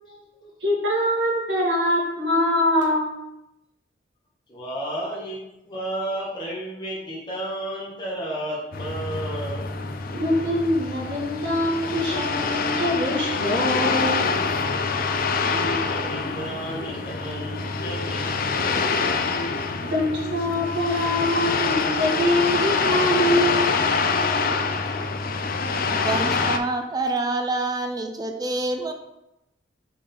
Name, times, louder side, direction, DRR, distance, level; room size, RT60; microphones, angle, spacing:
voice 1, 0.1-3.2 10.1-14.2 19.8-23.7, left 1 dB, 70° right, -3 dB, 2.0 m, -24 dB
voice 2, 4.5-5.4 5.7-9.8 15.4-19.3, right 1 dB, 25° left, -6 dB, 1.8 m, -32 dB
sound 1, 8.7-26.6, left 4 dB, 50° left, 0.5 m, -25 dB
voice 3, 25.9-28.9, right 2 dB, 20° right, 5 dB, 0.6 m, -27 dB
6.5 x 4.0 x 3.9 m, 0.89 s
head